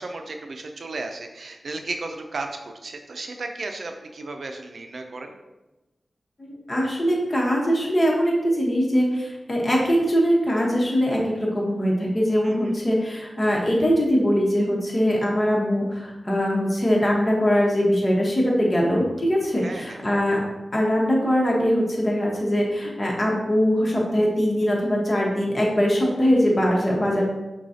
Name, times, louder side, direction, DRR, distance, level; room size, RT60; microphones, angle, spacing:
voice 1, 0.0-5.3 12.4-12.8 19.6-20.0, right 3 dB, 70° right, 4 dB, 0.5 m, -34 dB
voice 2, 6.4-20.4 20.7-27.3, equal, 35° left, -3 dB, 1.1 m, -22 dB
6.0 x 2.3 x 2.8 m, 1.0 s
cardioid pair, 55°, 0 cm